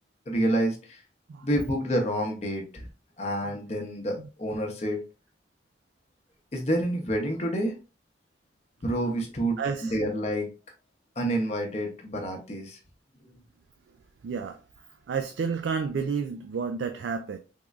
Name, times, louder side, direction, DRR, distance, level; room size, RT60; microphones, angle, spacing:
voice 1, 0.3-1.0 1.4-2.9 3.2-5.0 6.5-7.8 8.8-10.5 11.2-12.8, right 1 dB, 35° left, 0.7 m, -28 dB
voice 2, 9.6-10.0 14.2-14.6 15.1-17.4, right 5 dB, 90° right, 0.3 m, -30 dB
3.6 x 3.1 x 2.3 m
head